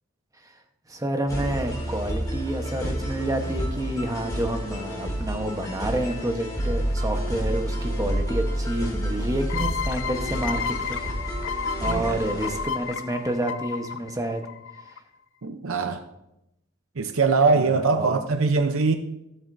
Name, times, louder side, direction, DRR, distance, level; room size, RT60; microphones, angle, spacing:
voice 1, 0.9-11.5 11.8-14.4 17.5-18.2, right 1 dB, 15° right, 1.1 m, -29 dB
sound 1, 1.3-13.1, right 1 dB, 20° left, 2.7 m, -29 dB
sound 2, 9.5-15.0, left 6 dB, 60° left, 0.5 m, -32 dB
voice 2, 11.8-12.2 15.4-16.0 17.0-18.9, right 4 dB, 70° right, 0.7 m, -22 dB
19.0 x 7.9 x 2.7 m
head